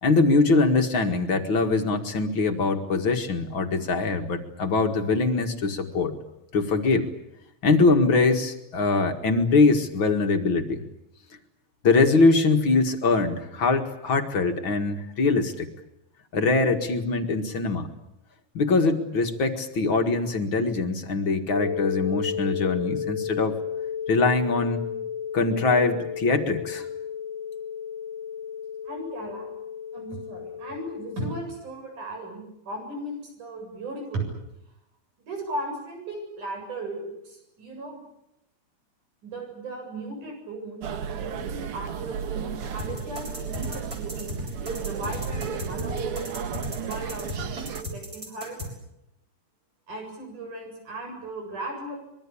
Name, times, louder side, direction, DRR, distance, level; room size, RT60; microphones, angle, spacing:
voice 1, 0.0-6.1 6.5-7.1 7.6-10.8 11.8-15.7 16.3-17.9 18.5-23.6 24.1-24.9 25.3-26.9, left 3 dB, 45° left, 6 dB, 2.3 m, -22 dB
sound 1, 21.5-31.4, left 8 dB, 15° left, 1.2 m, -33 dB
voice 2, 28.9-29.5 29.9-34.3 35.2-38.0 39.2-44.4 44.8-46.4 46.8-48.6 49.9-52.0, right 2 dB, 85° right, 3 dB, 9.3 m, -36 dB
sound 2, 40.8-47.8, right 7 dB, 55° right, 1.9 m, -33 dB
sound 3, 42.8-48.7, left 1 dB, 30° right, 7.0 m, -35 dB
25.5 x 22.5 x 8.6 m, 0.84 s
omnidirectional pair, 3.5 m